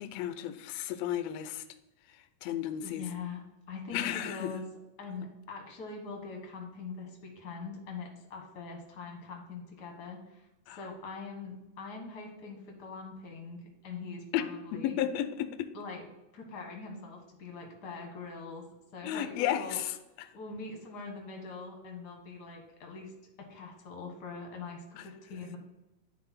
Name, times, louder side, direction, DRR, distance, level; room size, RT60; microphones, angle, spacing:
voice 1, 0.0-1.6 2.4-3.0 3.9-4.5 10.7-10.8 14.3-14.4 14.7-15.7 19.0-19.9, left 11 dB, 75° left, 10 dB, 1.6 m, -33 dB
voice 2, 2.8-3.4 3.7-4.7 5.0-15.0 15.7-16.0 16.3-18.7 18.9-19.8 20.3-23.1 23.4-25.6, left 4 dB, 45° left, 2 dB, 1.4 m, -43 dB
9.8 x 3.7 x 4.3 m, 0.98 s
omnidirectional pair, 3.4 m